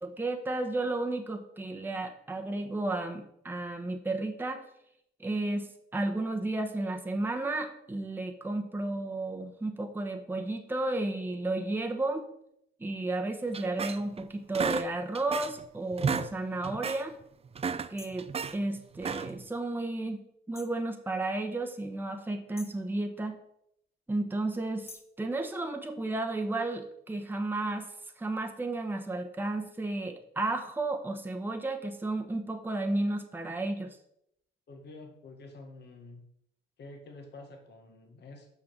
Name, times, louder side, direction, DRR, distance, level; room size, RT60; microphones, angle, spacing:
voice 1, 0.0-4.6 5.2-12.3 12.8-17.2 17.9-20.2 20.5-23.4 24.1-27.9 28.2-34.0, right 2 dB, 10° right, 3 dB, 1.0 m, -33 dB
sound 1, 13.5-14.2 14.5-15.6 15.9-16.3 16.6-17.0 17.4-18.5 19.0-19.5, right 6 dB, 30° right, 0.5 m, -33 dB
sound 2, 16.1-16.3 18.0-18.3 20.5-20.8 22.6-22.9 24.9-25.2, left 4 dB, 30° left, 1.0 m, -50 dB
voice 2, 34.7-36.2 36.8-38.5, left 2 dB, 60° left, 3 dB, 1.6 m, -48 dB
6.3 x 5.7 x 6.0 m, 0.75 s
cardioid pair, 90°, 20 cm